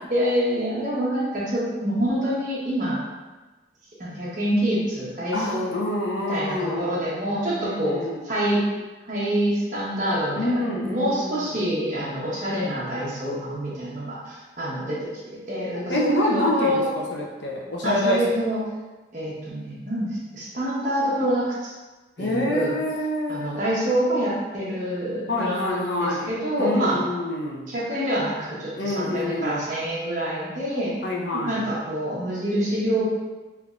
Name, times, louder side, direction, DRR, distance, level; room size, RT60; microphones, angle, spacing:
voice 1, 0.1-3.0 4.0-5.7 6.3-8.6 9.1-10.6 10.9-16.9 17.8-18.6 19.1-21.7 22.2-22.7 23.3-27.0 27.7-30.9 31.3-33.0, equal, 45° right, -7 dB, 1.0 m, -26 dB
voice 2, 5.3-7.1 7.5-8.2 10.3-11.4 15.7-18.2 22.2-23.5 25.3-26.3 26.6-27.7 28.8-29.6 31.0-31.7, left 1 dB, 75° left, -2 dB, 0.6 m, -27 dB
3.3 x 3.2 x 2.5 m, 1.2 s
head